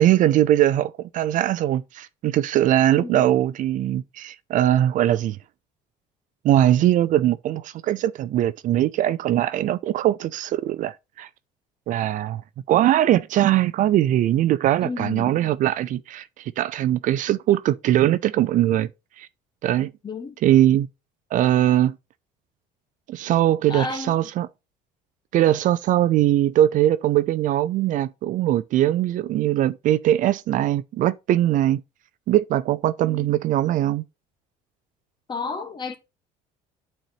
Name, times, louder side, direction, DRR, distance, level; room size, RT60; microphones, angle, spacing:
voice 1, 0.0-5.4 6.4-11.3 11.9-12.4 12.7-18.9 19.2-19.3 19.6-19.9 20.4-20.9 21.3-22.0 23.1-24.5 25.3-31.8 32.3-34.0, right 12 dB, 55° right, 0.5 m, -21 dB
voice 2, 2.9-3.3 14.8-15.4 20.0-20.4 23.7-24.1 33.1-33.3 35.3-36.0, left 4 dB, 30° left, 1.3 m, -32 dB
9.0 x 4.3 x 3.0 m
supercardioid pair, 100°, 16 cm